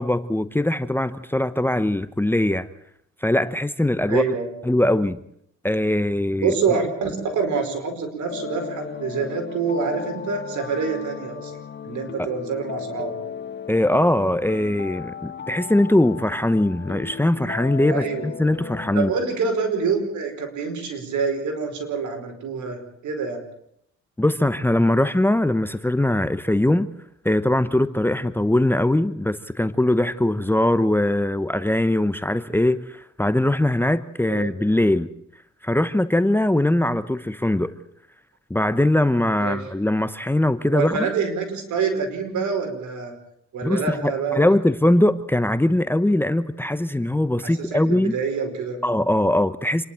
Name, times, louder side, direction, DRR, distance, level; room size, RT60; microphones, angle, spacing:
voice 1, 0.0-2.7 3.2-4.3 4.6-5.2 5.6-6.5 12.2-12.3 13.7-19.1 24.2-26.9 27.2-35.1 35.6-37.7 38.5-40.9 43.6-48.2 48.8-49.9, left 1 dB, 5° left, 0.9 m, -21 dB
voice 2, 4.1-4.5 6.4-11.5 11.8-13.2 17.9-18.3 18.9-23.4 34.3-34.5 39.4-39.7 40.7-43.1 43.5-44.4 47.6-48.8, right 5 dB, 75° right, 5.1 m, -26 dB
sound 1, 8.3-19.2, left 7 dB, 40° left, 1.1 m, -36 dB
27.0 x 11.5 x 8.9 m
cardioid pair, 90°, 30 cm